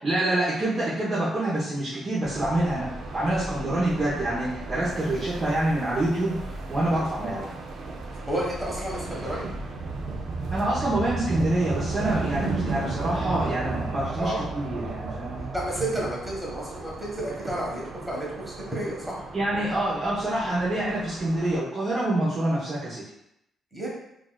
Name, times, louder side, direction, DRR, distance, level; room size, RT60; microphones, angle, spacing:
voice 1, 0.0-2.9 3.1-7.4 10.5-15.4 19.3-23.0, right 1 dB, 35° right, -9 dB, 0.9 m, -26 dB
sound 1, 2.2-21.6, right 3 dB, 65° right, 0.5 m, -34 dB
voice 2, 8.3-9.5 14.2-14.4 15.5-19.2 23.7-23.9, right 1 dB, ahead, -5 dB, 1.2 m, -31 dB
3.8 x 2.4 x 2.3 m, 0.80 s
cardioid pair, 90°, 0 cm